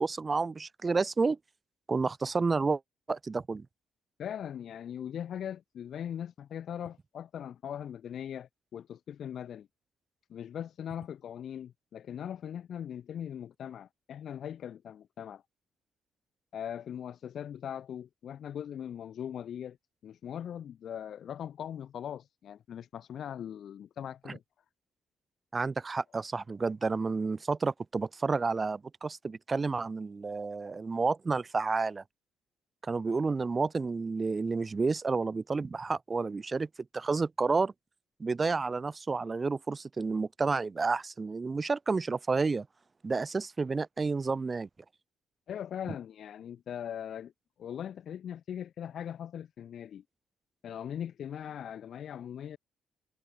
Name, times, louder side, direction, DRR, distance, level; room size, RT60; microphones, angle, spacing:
voice 1, 0.0-1.4 1.9-2.8 3.1-3.7 25.5-32.0 32.8-36.7 36.9-37.7 38.2-42.7 43.0-44.7, right 4 dB, 30° right, 1.7 m, -30 dB
voice 2, 4.2-9.7 10.3-15.4 16.5-19.8 20.0-24.4 45.5-47.3 47.6-50.0 50.6-52.6, left 9 dB, 65° left, 1.3 m, -40 dB
cardioid pair, 90°, 0 cm